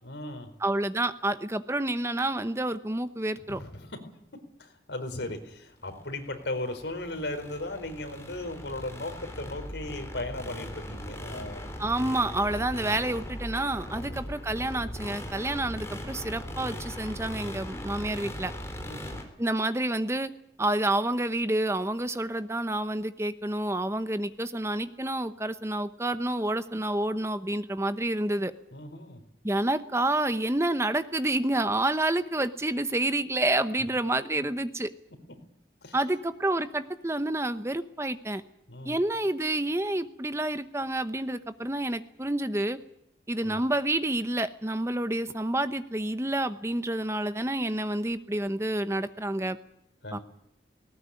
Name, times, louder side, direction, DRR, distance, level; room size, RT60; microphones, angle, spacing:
voice 1, 0.0-0.5 3.4-4.0 4.6-11.8 13.9-14.2 18.8-19.2 28.7-29.2 35.8-36.0 38.7-39.0 43.4-43.6 50.0-50.2, left 2 dB, 80° left, 6 dB, 4.3 m, -37 dB
voice 2, 0.6-3.6 11.8-18.5 19.4-20.3 20.6-28.5 29.4-34.9 35.9-38.4 38.8-42.8 43.3-49.6 50.1-50.2, right 1 dB, 15° right, 11 dB, 0.9 m, -29 dB
sound 1, 5.9-19.2, equal, 15° left, 3.6 m, -39 dB
19.0 x 19.0 x 9.8 m, 0.79 s
head